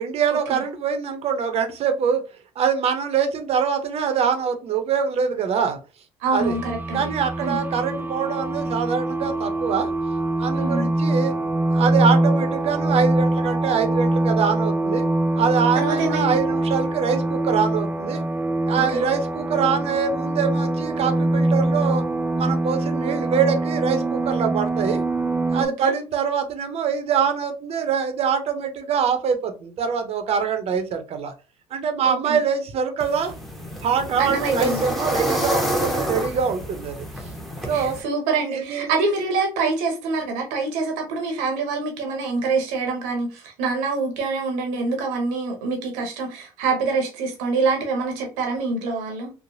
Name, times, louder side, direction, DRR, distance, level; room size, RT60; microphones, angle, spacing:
voice 1, 0.0-2.2 2.6-5.8 6.3-6.6 6.9-9.9 10.4-11.3 11.7-15.1 15.4-18.2 18.7-22.0 22.4-25.0 25.5-31.3 31.7-33.3 33.8-37.0 37.7-38.0 38.5-38.9, right 6 dB, 55° right, 7 dB, 0.7 m, -24 dB
voice 2, 6.2-7.1 7.4-7.6 10.5-10.9 15.7-16.4 18.9-19.0 25.6-25.9 32.0-32.4 34.2-34.8 37.7-49.3, right 4 dB, 80° right, 2 dB, 0.9 m, -25 dB
sound 1, 6.4-25.7, right 2 dB, 15° right, 0.3 m, -23 dB
sound 2, 33.0-38.0, equal, ahead, 0.8 m, -28 dB
3.1 x 2.1 x 2.5 m, 0.33 s
supercardioid pair, 75°, 12 cm